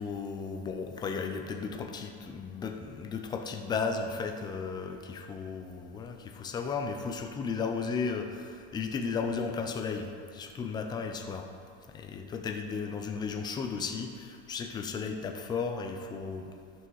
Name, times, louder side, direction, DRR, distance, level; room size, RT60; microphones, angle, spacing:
voice 1, 0.0-11.5 11.9-16.4, left 5 dB, 10° left, 4 dB, 0.4 m, -34 dB
11.0 x 6.1 x 4.6 m, 2.3 s
supercardioid pair, 155°, 35 cm